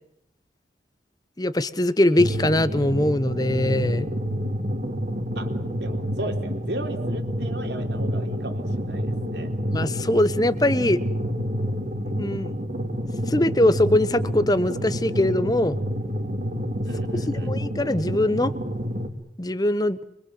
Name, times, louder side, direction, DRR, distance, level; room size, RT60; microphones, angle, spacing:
voice 1, 1.4-4.1 9.7-11.0 12.2-12.5 13.3-15.8 17.4-18.5 19.4-20.0, left 1 dB, 20° left, 14 dB, 1.1 m, -22 dB
sound 1, 2.2-19.1, equal, 45° right, 2.8 m, -28 dB
voice 2, 5.8-9.5 16.8-17.5, right 1 dB, 80° right, 5 dB, 3.8 m, -35 dB
25.0 x 25.0 x 7.8 m, 0.78 s
head